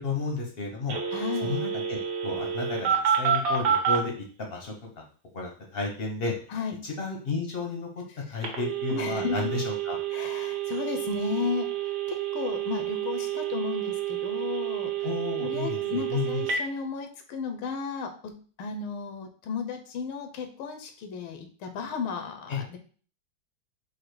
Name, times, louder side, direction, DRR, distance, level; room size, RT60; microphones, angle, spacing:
voice 1, 0.0-1.0 1.4-4.1 4.4-5.0 5.3-6.3 6.8-10.0 15.0-16.4 22.5-22.6, left 4 dB, 60° left, 1 dB, 0.6 m, -32 dB
Telephone, 0.9-4.0 8.4-16.6, right 8 dB, 60° right, 1.5 m, -29 dB
voice 2, 1.1-1.6 6.5-6.7 8.9-9.5 10.1-11.7 12.1-14.9 15.4-18.3 18.6-22.8, left 5 dB, 90° left, 6 dB, 1.5 m, -34 dB
4.8 x 2.1 x 4.7 m, 0.42 s
omnidirectional pair, 2.2 m